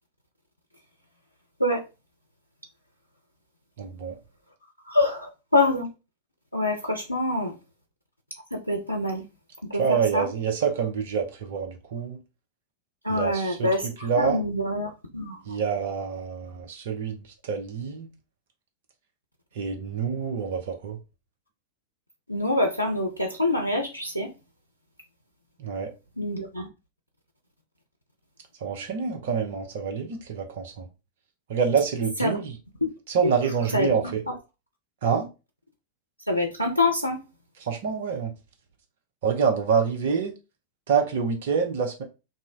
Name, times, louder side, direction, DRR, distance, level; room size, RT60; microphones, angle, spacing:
voice 1, 3.8-4.2 9.7-12.2 13.1-14.4 15.5-18.1 19.5-21.0 25.6-25.9 28.6-30.9 31.5-32.6 33.1-34.2 35.0-35.3 37.6-38.3 39.2-40.3 40.9-42.0, right 6 dB, 55° right, 0.7 m, -27 dB
voice 2, 4.9-5.9 6.5-7.5 8.5-9.2 9.7-9.8 10.1-10.3 13.0-15.4 22.3-24.3 26.2-26.7 32.2-32.4 32.8-32.9 33.2-33.3 33.7-33.9 36.3-37.2, left 2 dB, 85° left, 0.5 m, -25 dB
2.6 x 2.1 x 3.6 m
figure-of-eight pair, 90°, 0 cm